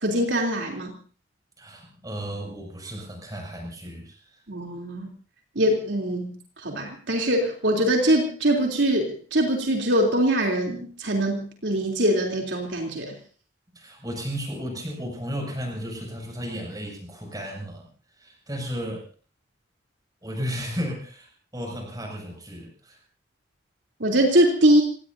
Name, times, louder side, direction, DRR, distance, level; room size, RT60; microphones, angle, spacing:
voice 1, 0.0-0.9 4.5-5.1 5.6-6.4 6.6-13.1 24.0-24.8, right 1 dB, 70° right, 0 dB, 3.4 m, -22 dB
voice 2, 1.6-4.2 13.7-17.9 18.2-19.1 20.2-23.0, equal, 20° right, 1 dB, 6.9 m, -34 dB
27.5 x 19.0 x 2.8 m, 0.39 s
head